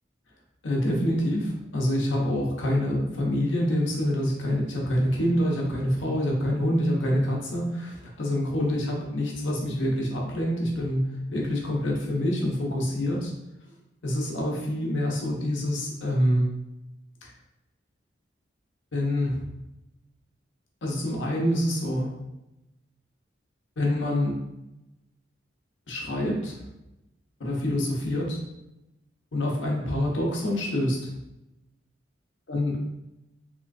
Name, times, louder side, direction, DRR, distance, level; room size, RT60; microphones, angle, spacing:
voice 1, 0.6-13.3 14.0-16.5 17.2-17.3 18.9-19.4 20.8-22.1 23.8-24.4 25.9-26.6 27.4-28.4 29.3-31.1 32.5-32.8, left 1 dB, 80° left, -2 dB, 0.8 m, -26 dB
3.1 x 3.0 x 2.5 m, 0.93 s
head